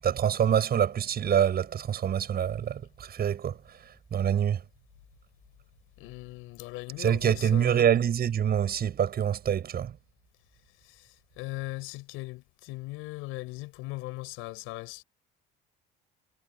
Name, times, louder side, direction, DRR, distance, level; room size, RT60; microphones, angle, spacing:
voice 1, 0.0-3.8 4.1-4.6 7.0-9.9, right 9 dB, 45° right, 6.8 m, -26 dB
voice 2, 6.0-8.0 10.8-15.0, left 21 dB, 80° left, 6.6 m, -39 dB
supercardioid pair, 95°, 21 cm